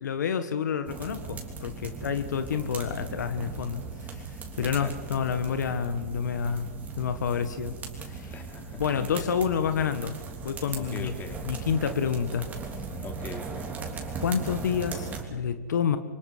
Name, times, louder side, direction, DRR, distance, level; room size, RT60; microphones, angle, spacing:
voice 1, 0.0-6.7 7.0-8.3 8.8-10.1 10.4-11.1 11.4-12.5 14.2-16.0, left 7 dB, 80° left, 10 dB, 1.4 m, -29 dB
sound 1, 0.8-15.2, right 4 dB, 15° right, 3.4 m, -38 dB
voice 2, 4.6-4.9 8.3-9.4 10.7-11.6 13.0-13.6, left 5 dB, 20° left, 4 dB, 3.2 m, -42 dB
27.0 x 24.5 x 4.9 m, 1.4 s
hypercardioid pair, 135°, 9 cm